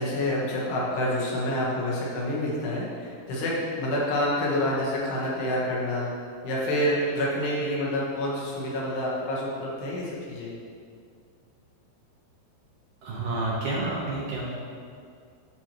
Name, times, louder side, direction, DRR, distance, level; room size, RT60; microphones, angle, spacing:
voice 1, 0.0-6.1 6.4-10.5, left 1 dB, 80° left, -5 dB, 3.4 m, -28 dB
voice 2, 13.0-14.5, right 2 dB, 70° right, -6 dB, 2.2 m, -29 dB
12.0 x 4.4 x 3.0 m, 2.3 s
omnidirectional pair, 4.7 m